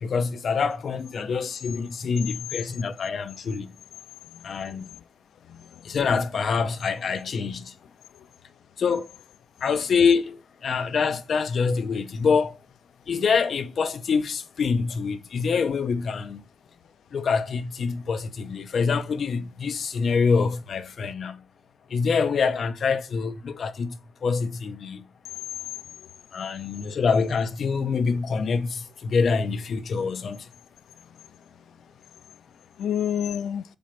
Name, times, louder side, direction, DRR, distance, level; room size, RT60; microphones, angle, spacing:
voice 1, 0.0-3.7 4.4-4.9 5.8-7.7 8.8-9.1 9.6-12.6 13.1-16.4 17.1-21.4 21.9-25.0 26.3-30.4, left 5 dB, 50° left, 0.9 m, -25 dB
voice 2, 4.3-5.0 5.5-5.9 26.9-27.0 32.8-33.6, left 9 dB, 70° left, 0.5 m, -30 dB
7.4 x 5.3 x 4.4 m
cardioid pair, 90°, 0 cm